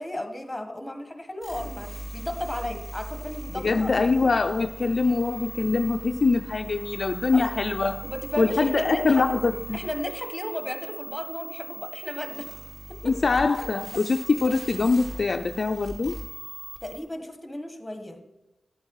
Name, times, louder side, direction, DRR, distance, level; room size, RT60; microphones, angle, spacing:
voice 1, 0.0-4.0 7.3-7.4 8.0-9.3 9.7-12.5 12.9-13.0 16.8-18.2, left 1 dB, 10° left, 1.5 m, -34 dB
sound 1, 1.4-17.0, right 1 dB, 35° right, 4.7 m, -39 dB
voice 2, 3.6-8.0 8.4-9.8 13.0-16.2, left 4 dB, 50° left, 0.4 m, -23 dB
12.0 x 8.6 x 4.7 m
cardioid pair, 70°, 0 cm